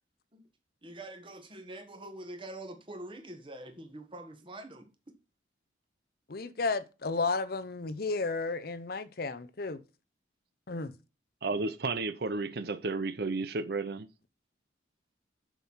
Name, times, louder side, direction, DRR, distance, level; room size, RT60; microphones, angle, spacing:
voice 1, 0.8-4.9, right 1 dB, 30° right, 1.5 m, -45 dB
voice 2, 6.3-9.8 10.7-10.9, left 3 dB, 55° left, 0.7 m, -33 dB
voice 3, 11.4-14.1, right 3 dB, 55° right, 0.7 m, -32 dB
7.2 x 6.2 x 5.6 m
head